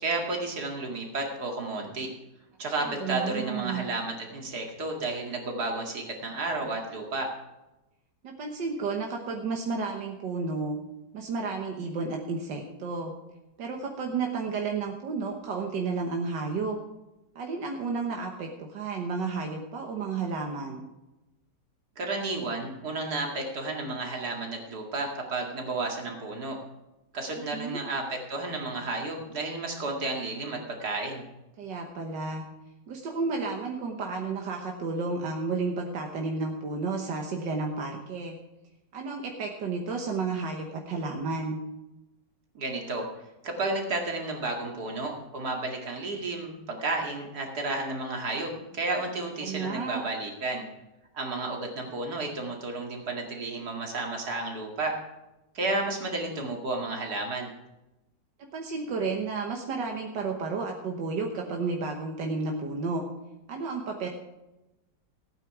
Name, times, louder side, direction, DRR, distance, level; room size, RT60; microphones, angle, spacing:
voice 1, 0.0-2.1 2.6-7.3 22.0-26.6 27.1-31.2 42.5-43.1 43.4-50.7 51.1-55.0 55.5-57.5, right 2 dB, 65° right, 1 dB, 2.7 m, -32 dB
voice 2, 2.8-3.9 8.2-10.8 11.1-13.1 13.6-16.8 17.4-20.9 27.5-27.8 31.6-32.4 32.9-38.4 38.9-41.6 49.4-50.0 58.5-63.0 63.5-64.1, right 4 dB, 90° right, 2 dB, 1.9 m, -32 dB
15.5 x 9.0 x 4.7 m, 0.98 s
omnidirectional pair, 1.8 m